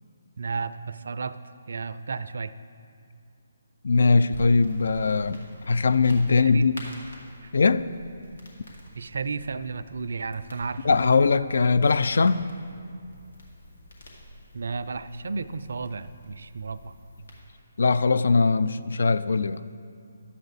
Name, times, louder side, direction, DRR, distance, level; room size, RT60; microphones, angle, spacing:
voice 1, 0.4-1.4 1.7-2.5 6.3-6.6 7.4-7.5 8.9-10.9 14.5-16.9, right 4 dB, 70° right, 13 dB, 0.4 m, -33 dB
voice 2, 3.8-6.7 7.5-7.9 10.8-12.5 17.8-19.6, left 4 dB, 70° left, 13 dB, 0.4 m, -21 dB
sound 1, 4.3-17.4, left 1 dB, 85° left, 2.2 m, -47 dB
12.0 x 7.9 x 4.1 m, 2.4 s
figure-of-eight pair, 150°, 0 cm